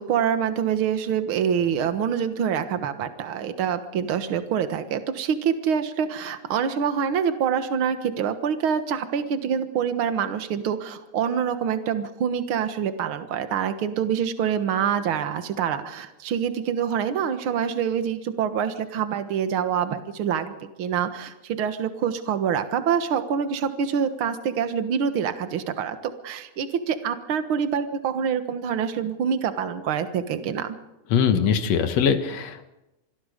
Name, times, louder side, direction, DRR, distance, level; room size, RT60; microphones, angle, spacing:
voice 1, 0.0-26.0 26.2-30.7, right 7 dB, 55° right, 9 dB, 1.6 m, -26 dB
voice 2, 31.1-32.6, left 7 dB, 55° left, 7 dB, 2.3 m, -21 dB
25.5 x 19.5 x 5.2 m, 0.93 s
omnidirectional pair, 4.0 m